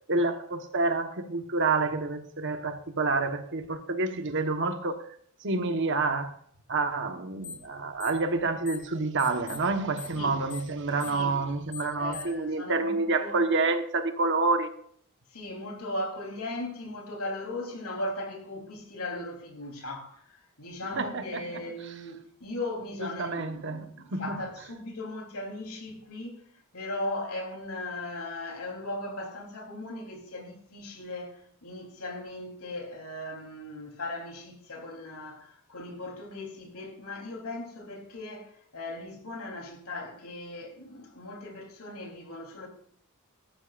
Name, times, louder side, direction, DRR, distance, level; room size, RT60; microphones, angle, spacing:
voice 1, 0.1-5.0 5.4-6.4 6.7-14.7 20.8-21.6 23.0-24.4, right 3 dB, 55° right, 1.3 m, -28 dB
sound 1, 7.4-7.7 8.0-8.9 9.2-12.4, left 6 dB, 40° left, 3.8 m, -41 dB
voice 2, 11.9-13.5 15.3-26.4 26.7-42.7, left 2 dB, 85° left, 3.6 m, -38 dB
17.5 x 13.5 x 2.6 m
head